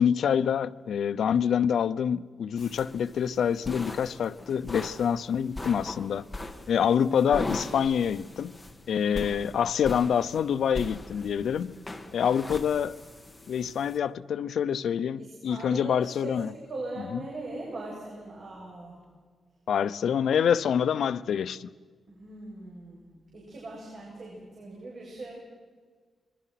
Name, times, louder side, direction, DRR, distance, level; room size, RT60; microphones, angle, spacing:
voice 1, 0.0-6.2 6.7-8.5 8.9-11.8 12.1-13.0 13.5-16.5 19.7-21.7, left 8 dB, 85° left, 0.7 m, -26 dB
sound 1, 2.6-14.0, left 2 dB, 15° left, 2.0 m, -40 dB
voice 2, 15.2-19.0 22.1-25.3, right 2 dB, 50° right, 7.7 m, -40 dB
26.5 x 22.5 x 5.9 m
wide cardioid pair, 145°, 0 cm